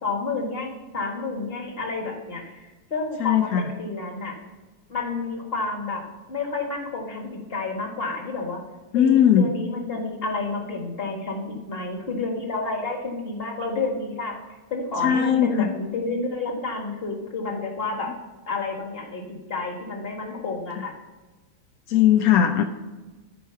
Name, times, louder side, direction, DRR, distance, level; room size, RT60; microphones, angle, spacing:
voice 1, 0.0-4.3 4.9-6.0 6.3-8.6 8.9-18.1 18.5-20.9, left 3 dB, 30° left, 1 dB, 1.6 m, -30 dB
voice 2, 3.2-3.7 8.9-9.5 15.0-15.7 21.9-22.6, left 9 dB, 75° left, 6 dB, 0.8 m, -19 dB
13.5 x 4.7 x 5.6 m, 1.2 s
omnidirectional pair, 2.1 m